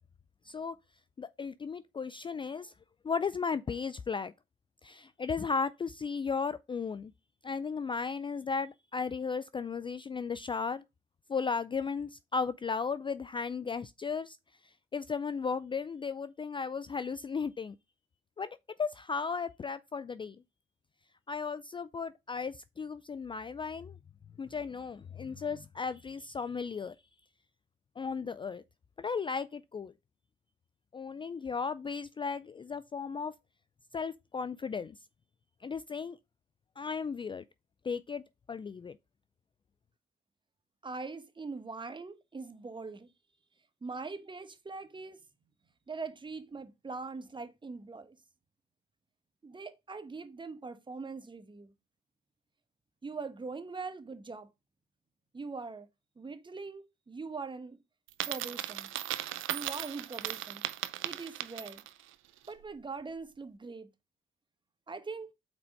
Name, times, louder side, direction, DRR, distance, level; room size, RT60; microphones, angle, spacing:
voice 1, 0.4-0.8 1.2-2.7 3.0-4.3 4.8-7.1 7.4-10.8 11.3-14.4 14.6-17.8 18.4-18.5 18.8-20.4 21.3-24.0 24.4-26.9 28.0-28.6 29.0-29.9 30.9-33.3 33.9-35.0 35.6-36.2 36.8-37.4 37.8-38.2 38.5-39.0, left 5 dB, 25° left, 0.3 m, -35 dB
voice 2, 40.8-43.1 43.8-45.2 45.9-48.2 49.4-51.7 53.0-54.5 55.3-55.9 56.2-57.8 58.3-58.9 59.5-60.6 61.0-61.8 62.5-63.9 64.9-65.3, right 4 dB, 25° right, 1.2 m, -42 dB
Coin (dropping), 58.1-62.0, right 14 dB, 85° right, 0.6 m, -37 dB
6.1 x 4.2 x 5.2 m
cardioid pair, 90°, 20 cm